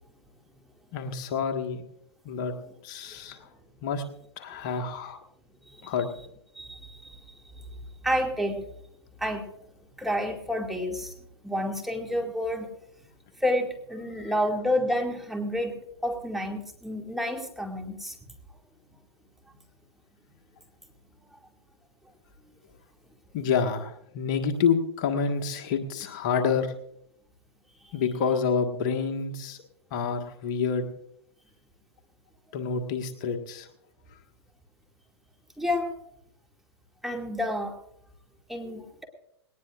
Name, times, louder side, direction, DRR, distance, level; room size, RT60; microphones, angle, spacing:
voice 1, 0.9-1.8 2.2-2.5 2.8-3.5 3.8-4.0 4.4-5.2 5.8-6.1 14.2-14.3 23.3-26.7 27.9-29.6 29.9-30.9 32.5-33.7 34.1-34.2, left 6 dB, 50° left, 5 dB, 1.6 m, -28 dB
voice 2, 6.6-7.2 8.0-8.6 9.2-9.4 10.0-11.1 11.4-12.7 13.4-15.7 16.0-18.2 21.3-21.4 35.6-35.9 37.0-37.8 38.5-39.0, equal, ahead, 1 dB, 2.2 m, -29 dB
19.5 x 19.0 x 2.5 m, 0.74 s
hypercardioid pair, 115°, 14 cm